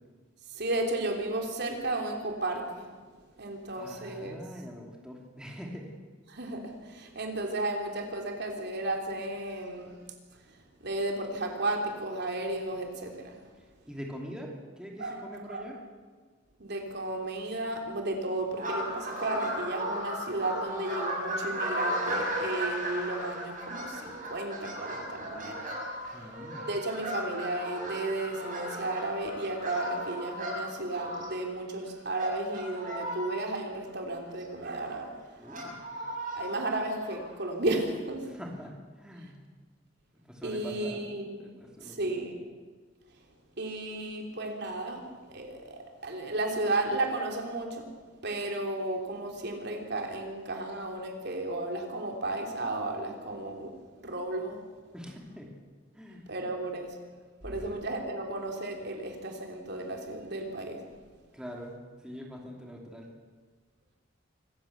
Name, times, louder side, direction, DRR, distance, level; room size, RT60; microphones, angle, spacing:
voice 1, 0.5-2.9 3.4-4.4 6.3-9.9 10.5-10.6 10.8-13.4 15.0-15.6 16.6-25.6 26.7-35.2 36.3-38.3 40.4-41.4 41.8-42.4 43.6-47.9 48.2-53.7 54.0-54.6 56.3-57.0 57.4-60.8, right 2 dB, 60° right, 2 dB, 3.5 m, -33 dB
voice 2, 3.7-5.9 13.9-15.8 26.1-26.7 35.3-35.8 38.2-39.4 40.2-41.1 41.4-42.1 54.9-55.5 55.9-56.4 57.4-57.8 61.3-61.7 62.0-63.1, equal, 5° right, -1 dB, 3.0 m, -43 dB
sound 1, 18.6-31.4 32.1-33.3 34.0-34.1 34.4-34.5 34.9-35.0 35.4-36.4 36.9-37.1, equal, 45° right, 7.1 m, -35 dB
25.5 x 15.0 x 8.1 m, 1.4 s
head